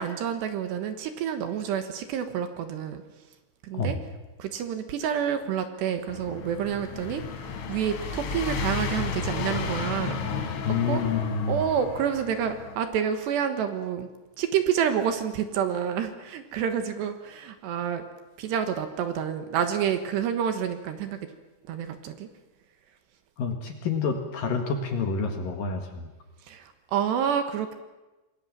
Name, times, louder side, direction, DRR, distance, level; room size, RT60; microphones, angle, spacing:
voice 1, 0.0-3.0 3.6-4.0 4.4-7.2 7.7-10.6 10.8-11.0 11.5-14.1 14.4-18.0 18.4-21.3 21.7-22.3 26.5-27.7, right 8 dB, 70° right, 8 dB, 3.2 m, -28 dB
sound 1, 6.1-12.8, left 6 dB, 80° left, 4.8 m, -33 dB
voice 2, 10.6-11.6 23.4-26.1, left 5 dB, 60° left, 5 dB, 2.8 m, -28 dB
27.5 x 21.0 x 7.4 m, 1.1 s
omnidirectional pair, 5.7 m